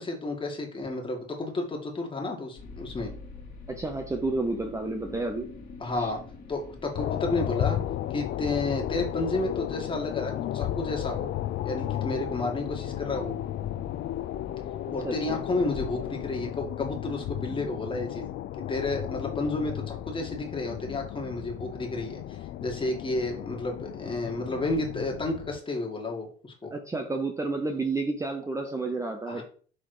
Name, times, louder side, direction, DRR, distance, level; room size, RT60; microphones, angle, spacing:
voice 1, 0.0-3.1 5.8-6.2 6.5-7.8 8.1-11.3 11.6-13.4 14.9-18.3 18.7-26.7 29.3-29.4, left 2 dB, 25° left, 1 dB, 2.0 m, -31 dB
sound 1, 2.6-16.4, left 3 dB, 40° left, 2.1 m, -47 dB
voice 2, 3.7-5.5 6.0-6.1 15.0-15.4 26.7-29.4, right 3 dB, 15° right, 4 dB, 0.8 m, -30 dB
sound 2, 6.9-25.6, left 12 dB, 65° left, 0.5 m, -34 dB
6.2 x 4.0 x 4.9 m, 0.43 s
cardioid pair, 120°, 21 cm